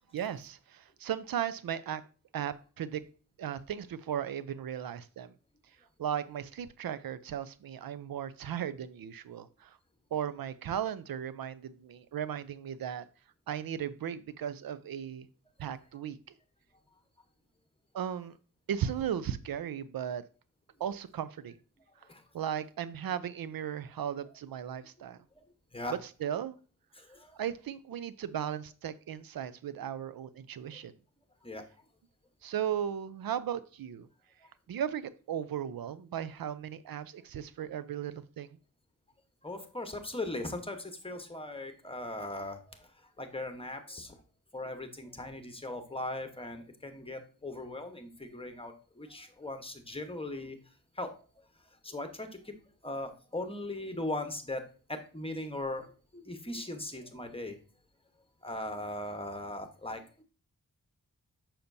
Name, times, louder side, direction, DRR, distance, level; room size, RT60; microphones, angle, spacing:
voice 1, 0.1-2.0 2.3-3.0 3.4-5.3 6.0-9.8 10.1-13.1 13.5-15.3 15.6-16.2 17.9-18.4 18.7-20.2 20.8-21.5 22.3-25.2 25.9-26.5 27.3-30.9 32.4-34.1 34.7-38.6, right 9 dB, 85° right, 15 dB, 0.5 m, -36 dB
voice 2, 26.9-27.4 31.4-31.7 34.4-34.5 39.4-44.2 44.5-50.6 50.9-51.1 51.4-51.5 51.8-52.5 52.8-54.6 54.9-57.6 58.4-60.2, left 1 dB, 15° left, 6 dB, 1.1 m, -39 dB
6.8 x 5.7 x 2.7 m, 0.36 s
wide cardioid pair, 65°, 34 cm